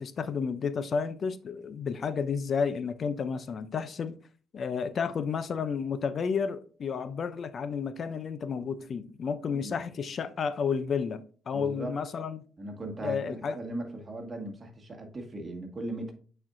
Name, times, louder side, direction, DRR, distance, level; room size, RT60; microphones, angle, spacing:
voice 1, 0.0-4.2 4.5-11.2 11.5-12.4 13.0-13.6, left 6 dB, 50° left, 0.5 m, -31 dB
voice 2, 11.5-12.0 12.6-16.1, right 1 dB, 30° right, 1.7 m, -38 dB
8.5 x 4.4 x 2.6 m
cardioid pair, 90°, 0 cm